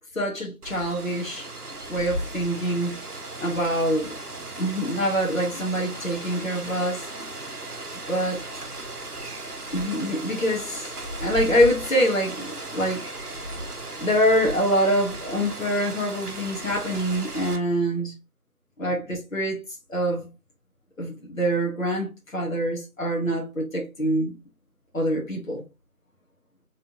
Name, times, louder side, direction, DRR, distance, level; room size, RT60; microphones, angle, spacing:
voice 1, 0.1-1.5 1.9-2.9 3.4-4.2 4.6-7.1 8.1-8.4 9.7-10.9 11.2-13.0 14.0-18.1 18.8-19.6 19.9-20.3 21.0-24.3 24.9-25.6, equal, 60° left, 1.3 m, -25 dB
Rain, 0.6-17.6, right 2 dB, 80° right, 1.3 m, -36 dB
4.1 x 3.9 x 2.8 m
figure-of-eight pair, 175°, 45 cm